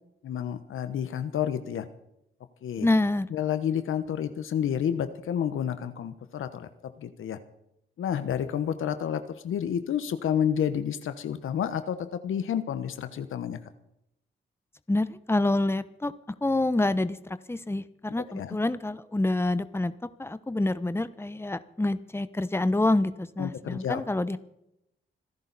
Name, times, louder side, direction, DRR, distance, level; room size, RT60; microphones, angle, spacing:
voice 1, 0.2-1.9 2.6-2.9 3.3-6.7 7.0-7.4 8.0-13.6 18.3-18.6 23.4-24.0, left 9 dB, 80° left, 11 dB, 1.1 m, -30 dB
voice 2, 2.8-3.3 14.9-16.1 16.4-17.2 17.5-19.9 20.2-24.4, left 2 dB, 10° left, 13 dB, 1.0 m, -27 dB
26.5 x 11.0 x 4.1 m, 0.80 s
cardioid pair, 55°, 20 cm